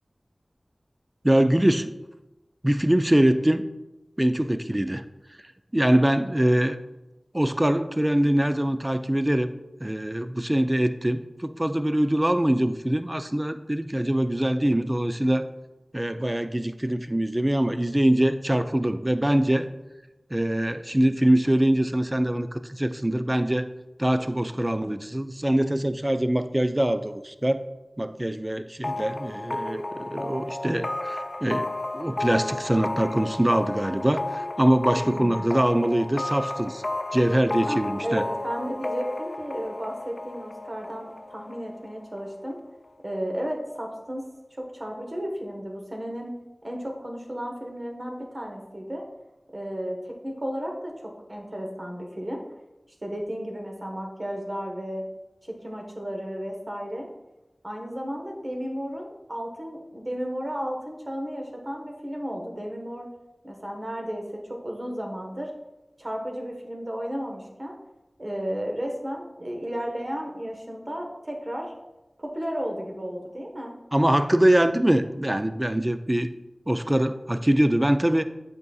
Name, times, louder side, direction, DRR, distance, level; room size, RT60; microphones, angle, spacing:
voice 1, 1.2-1.9 2.6-3.7 4.2-5.1 5.7-6.8 7.3-9.5 9.8-15.5 15.9-19.7 20.3-23.7 24.0-27.6 28.0-36.8 37.1-38.3 73.9-76.3 76.7-78.2, right 1 dB, 20° right, 10 dB, 0.4 m, -23 dB
sound 1, 28.8-42.3, left 2 dB, 50° left, 0.4 m, -33 dB
voice 2, 34.9-35.5 37.6-42.6 43.0-44.3 44.6-46.3 46.6-49.1 49.5-52.4 53.0-55.0 55.4-57.1 57.6-63.1 63.4-65.5 66.0-67.8 68.2-71.7 72.2-73.7, equal, 40° right, 1 dB, 1.2 m, -33 dB
8.1 x 5.2 x 2.3 m, 1.0 s
wide cardioid pair, 40°, 0 cm